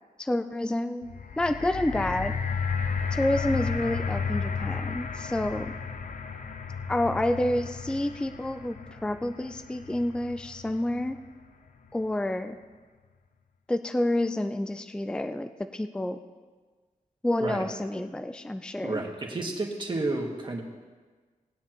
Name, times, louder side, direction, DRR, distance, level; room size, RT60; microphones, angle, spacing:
voice 1, 0.2-1.1 1.4-2.3 3.1-5.7 6.9-11.2 11.9-12.6 13.7-16.2 17.2-19.1, left 1 dB, 5° left, 8 dB, 0.4 m, -29 dB
sound 1, 1.0-11.3 12.0-12.1, left 5 dB, 65° left, 0.6 m, -33 dB
voice 2, 18.8-20.6, right 2 dB, 35° right, 0 dB, 1.6 m, -31 dB
19.5 x 9.4 x 3.0 m, 1.4 s
wide cardioid pair, 150°, 14 cm